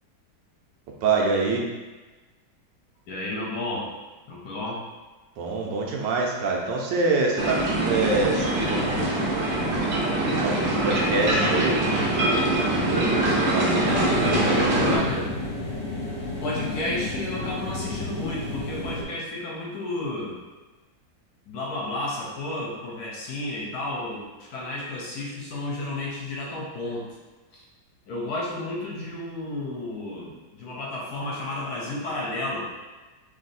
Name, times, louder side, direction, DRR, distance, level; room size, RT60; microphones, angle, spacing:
voice 1, 1.0-1.6 5.4-9.3 10.4-13.8 14.2-15.0, right 3 dB, 80° right, -1 dB, 1.3 m, -26 dB
voice 2, 3.1-3.9 4.3-4.8 14.7-15.3 16.4-20.4 21.5-27.2 28.1-32.7, left 2 dB, 65° left, -3 dB, 1.1 m, -32 dB
sound 1, 7.4-15.0, right 1 dB, 55° right, 0.7 m, -23 dB
sound 2, 13.8-19.0, left 2 dB, 45° left, 1.1 m, -32 dB
3.3 x 2.7 x 4.0 m, 1.2 s
omnidirectional pair, 2.0 m